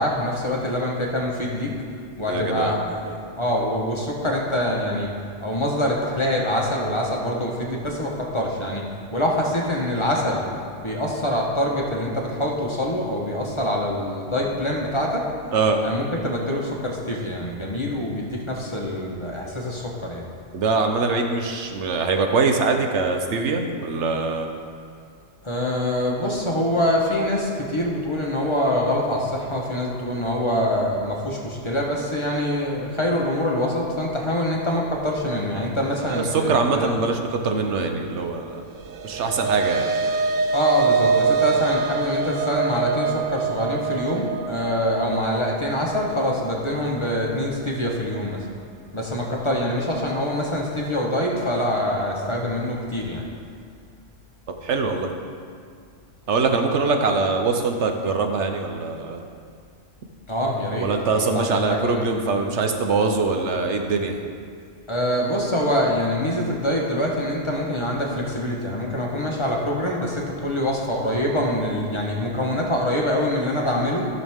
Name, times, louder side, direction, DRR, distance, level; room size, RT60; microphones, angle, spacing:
voice 1, 0.0-1.7 2.2-5.1 5.4-8.8 9.1-10.4 10.8-15.2 15.8-20.3 25.4-36.9 40.5-48.5 48.9-53.2 60.3-62.0 64.9-74.1, left 1 dB, 25° left, -2 dB, 1.1 m, -25 dB
voice 2, 2.3-2.8 15.5-15.8 20.5-24.5 36.0-38.6 39.0-39.9 54.6-55.1 56.3-59.2 60.8-64.2, right 4 dB, 70° right, 4 dB, 1.1 m, -23 dB
sound 1, 38.8-47.3, right 5 dB, 85° right, 1.0 m, -25 dB
14.0 x 6.5 x 3.6 m, 2.2 s
omnidirectional pair, 1.3 m